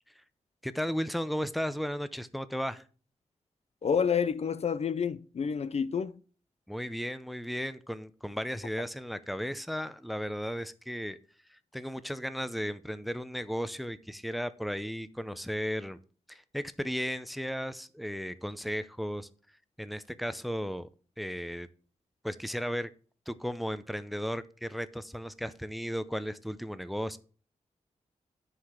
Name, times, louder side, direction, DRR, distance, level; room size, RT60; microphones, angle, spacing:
voice 1, 0.6-2.8 6.7-11.2 11.5-16.0 16.3-19.3 19.8-20.9 21.2-21.7 22.2-22.9 23.3-27.2, equal, ahead, 0.7 m, -35 dB
voice 2, 3.8-6.2, left 6 dB, 60° left, 0.5 m, -29 dB
9.9 x 5.0 x 5.7 m
wide cardioid pair, 80°, 12 cm